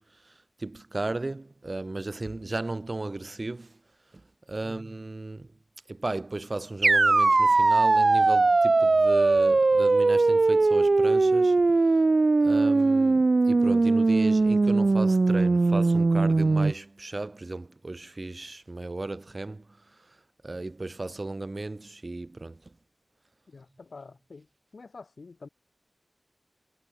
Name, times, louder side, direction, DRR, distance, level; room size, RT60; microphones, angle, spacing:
voice 1, 0.0-3.8 4.1-4.2 4.5-5.5 5.9-11.6 11.9-12.0 12.4-20.2 20.4-22.7, right 2 dB, 50° right, 1.8 m, -35 dB
sound 1, 6.8-16.7, right 3 dB, 65° right, 0.4 m, -20 dB
voice 2, 23.5-24.5 24.7-25.5, left 4 dB, 85° left, 6.6 m, -47 dB
wide cardioid pair, 45°, 0 cm